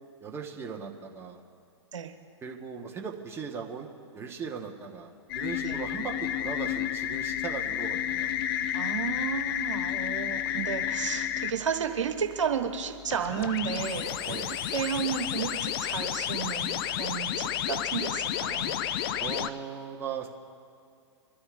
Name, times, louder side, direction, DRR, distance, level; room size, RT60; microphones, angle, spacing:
voice 1, 0.2-1.4 2.4-3.9 4.1-8.3 14.3-14.5 18.4-18.8 19.2-20.3, right 6 dB, 15° right, 0 dB, 1.4 m, -38 dB
sound 1, 5.3-11.5 13.1-19.5, left 11 dB, 50° left, 0.6 m, -31 dB
voice 2, 8.7-18.7, right 7 dB, 90° right, 4 dB, 1.2 m, -33 dB
25.5 x 13.0 x 2.6 m, 2.3 s
hypercardioid pair, 120°, 15 cm